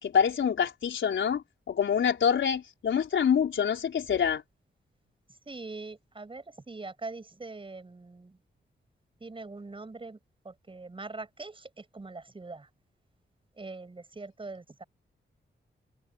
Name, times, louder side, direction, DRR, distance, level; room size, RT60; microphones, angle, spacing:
voice 1, 0.0-4.4, left 7 dB, 90° left, 4.4 m, -26 dB
voice 2, 5.5-8.4 9.2-10.2 10.4-12.7 13.6-14.8, right 3 dB, 25° right, 7.3 m, -42 dB
wide cardioid pair, 130°, 19 cm